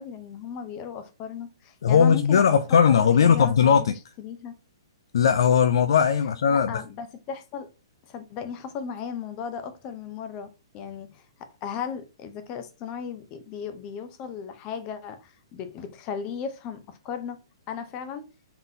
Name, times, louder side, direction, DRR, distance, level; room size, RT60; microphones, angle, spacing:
voice 1, 0.0-2.6 2.9-4.6 6.5-7.7 8.1-11.3 11.6-17.4 17.7-18.3, left 7 dB, 30° left, 0.7 m, -36 dB
voice 2, 1.8-3.9 5.1-6.7, left 7 dB, 70° left, 0.4 m, -19 dB
3.9 x 3.7 x 2.7 m
hypercardioid pair, 145°, 3 cm